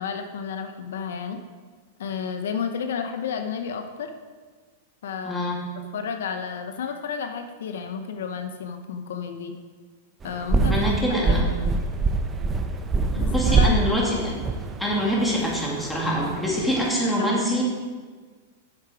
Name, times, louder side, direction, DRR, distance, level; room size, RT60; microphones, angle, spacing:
voice 1, 0.0-1.4 2.0-4.1 5.0-5.5 5.9-9.5 10.2-10.8 11.1-11.8 13.2-13.8 17.0-17.4, left 6 dB, 75° left, 7 dB, 0.7 m, -31 dB
voice 2, 5.2-5.7 10.7-11.5 13.3-14.4 14.8-17.6, equal, 5° left, -4 dB, 2.3 m, -25 dB
sound 1, 10.2-16.9, right 3 dB, 20° right, 0.7 m, -25 dB
8.2 x 6.6 x 4.9 m, 1.5 s
hypercardioid pair, 125°, 0 cm